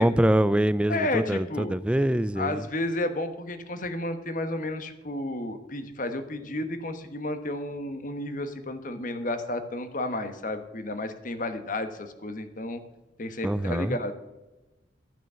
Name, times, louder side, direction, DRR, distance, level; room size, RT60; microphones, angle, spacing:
voice 1, 0.0-2.6 13.4-14.0, right 1 dB, 5° right, 0.3 m, -24 dB
voice 2, 0.9-1.7 2.4-12.8 13.2-14.1, left 1 dB, 45° left, 1.2 m, -32 dB
13.5 x 6.2 x 6.9 m
head